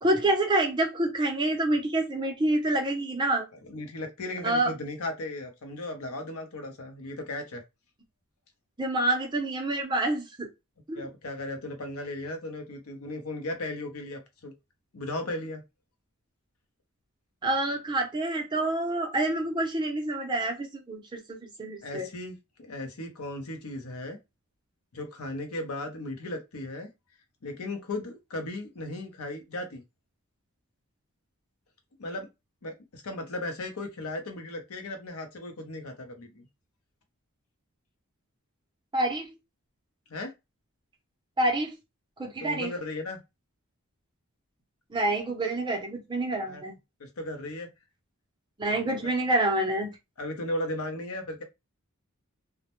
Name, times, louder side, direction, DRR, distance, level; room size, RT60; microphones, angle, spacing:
voice 1, 0.0-3.5 4.4-4.7 8.8-10.5 10.9-11.1 17.4-22.1 38.9-39.3 41.4-41.8 42.2-42.7 44.9-46.7 48.6-49.9, right 1 dB, 20° right, 0.5 m, -27 dB
voice 2, 3.7-7.6 10.9-14.5 14.9-15.6 21.8-24.2 24.9-26.9 27.4-29.8 32.0-32.3 32.6-36.5 40.1-40.3 42.4-43.2 46.4-46.6 47.0-47.7 49.0-49.1 50.2-51.4, left 1 dB, 85° left, 0.7 m, -36 dB
2.1 x 2.1 x 2.9 m
head